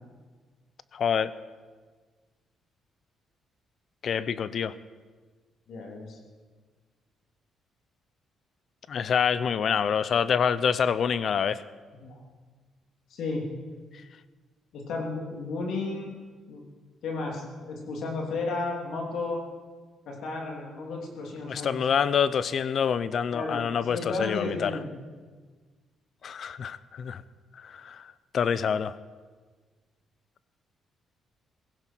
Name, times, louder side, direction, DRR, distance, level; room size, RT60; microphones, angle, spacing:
voice 1, 0.9-1.3 4.0-4.7 8.9-11.6 21.4-24.7 26.2-27.2 27.6-28.9, left 7 dB, 55° left, 16 dB, 0.6 m, -26 dB
voice 2, 5.7-6.2 12.0-12.2 13.1-13.6 14.7-16.1 16.5-16.6 17.0-19.4 20.1-21.8 23.3-24.9, left 3 dB, 75° left, 0 dB, 3.1 m, -33 dB
16.5 x 16.0 x 4.6 m, 1.4 s
cardioid pair, 90°, 0 cm